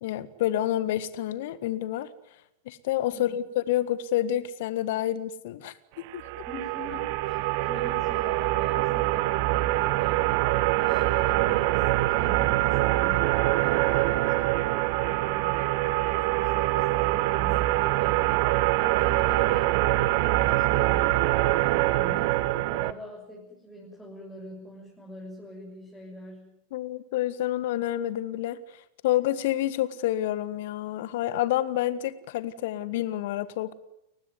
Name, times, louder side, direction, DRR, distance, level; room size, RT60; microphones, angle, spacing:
voice 1, 0.0-2.1 2.7-5.7 6.1-6.2 26.7-33.7, left 13 dB, 50° left, 16 dB, 1.6 m, -28 dB
sound 1, 6.1-22.9, right 18 dB, 45° right, 0.9 m, -24 dB
voice 2, 6.5-18.4 18.7-26.5, left 1 dB, 5° left, -4 dB, 7.2 m, -44 dB
30.0 x 16.0 x 9.7 m, 0.86 s
figure-of-eight pair, 90°, 0 cm